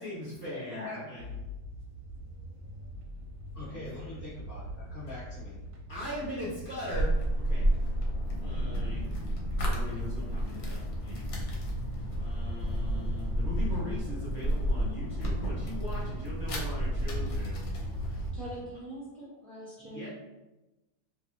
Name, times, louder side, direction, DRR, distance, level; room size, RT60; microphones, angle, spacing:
voice 1, 0.0-1.2 3.5-4.1 5.9-7.7 8.4-9.1 9.5-11.4 12.2-17.6 17.9-18.2 19.8-20.1, left 1 dB, 25° right, -9 dB, 0.4 m, -40 dB
voice 2, 0.7-1.4 3.5-5.6, left 2 dB, 50° left, -10 dB, 0.7 m, -43 dB
Short drive interior, 1.2-18.5, left 1 dB, 70° right, 0.9 m, -43 dB
sound 1, 6.9-18.3, right 1 dB, 70° left, 1.0 m, -31 dB
voice 3, 18.3-20.1, right 1 dB, ahead, -8 dB, 0.8 m, -43 dB
2.6 x 2.5 x 2.7 m, 1.0 s
omnidirectional pair, 1.8 m